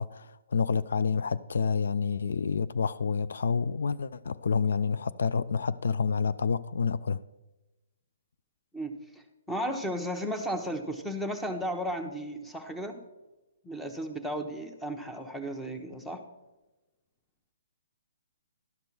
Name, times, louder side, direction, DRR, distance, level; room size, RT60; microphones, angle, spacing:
voice 1, 0.0-7.2, left 5 dB, 75° left, 0.3 m, -28 dB
voice 2, 8.7-13.0 13.6-16.2, equal, ahead, 0.9 m, -34 dB
12.0 x 5.3 x 6.0 m
hypercardioid pair, 145°, 0 cm